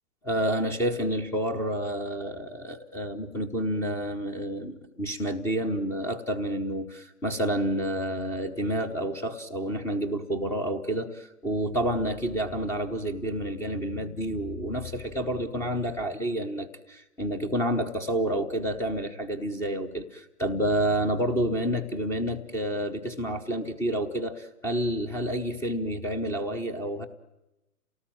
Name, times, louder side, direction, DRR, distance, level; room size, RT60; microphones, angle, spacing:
voice 1, 0.2-27.1, right 1 dB, 5° left, 9 dB, 0.9 m, -29 dB
28.0 x 18.5 x 9.0 m, 0.97 s
hypercardioid pair, 140°, 46 cm